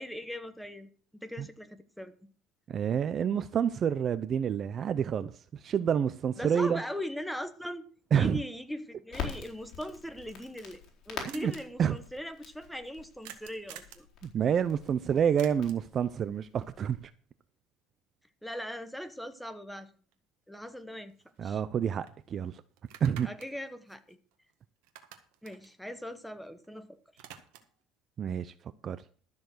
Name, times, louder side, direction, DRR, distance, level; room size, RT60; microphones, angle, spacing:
voice 1, 0.0-2.3 6.4-7.8 8.1-14.1 18.4-19.9 20.5-21.1 21.4-21.6 23.2-24.2 25.4-27.2, equal, ahead, 1.1 m, -40 dB
voice 2, 2.7-5.3 5.6-6.8 8.1-8.4 11.2-11.5 11.8-12.0 14.2-17.0 21.4-22.6 23.0-23.3 28.2-28.5 28.8-29.0, right 8 dB, 35° right, 0.5 m, -28 dB
Crackle, 9.1-17.0, left 7 dB, 50° left, 4.1 m, -45 dB
sound 1, 10.9-11.0 11.3-11.6 13.2-14.1 15.4-15.9 20.1-20.2 20.6-21.8 22.1-22.2 22.8-24.5 24.8-26.7 26.9-27.8, right 11 dB, 90° right, 1.7 m, -50 dB
13.0 x 7.1 x 6.2 m
cardioid pair, 140°, 0 cm